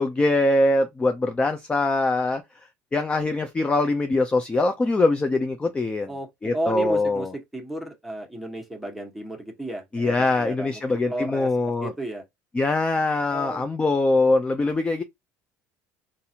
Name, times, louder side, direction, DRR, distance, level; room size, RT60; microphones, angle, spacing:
voice 1, 0.0-2.4 2.9-6.1 6.4-7.3 9.9-11.9 12.5-15.0, left 2 dB, 20° left, 0.5 m, -23 dB
voice 2, 6.1-12.2 13.3-13.6, right 1 dB, ahead, 1.3 m, -33 dB
3.9 x 2.5 x 2.8 m
supercardioid pair, 105°, 6 cm